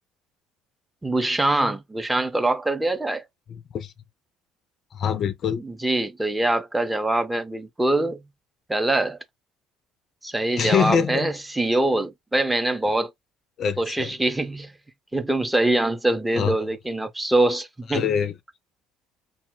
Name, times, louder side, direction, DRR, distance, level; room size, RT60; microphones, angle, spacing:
voice 1, 1.0-3.2 5.6-8.2 8.7-9.2 10.2-13.1 13.8-14.7 15.1-18.2, right 2 dB, 10° right, 0.5 m, -24 dB
voice 2, 3.5-3.9 4.9-5.6 10.6-11.3 13.6-14.1 16.3-16.5 17.9-18.3, left 7 dB, 45° left, 0.3 m, -24 dB
2.1 x 2.1 x 3.6 m
figure-of-eight pair, 55°, 0 cm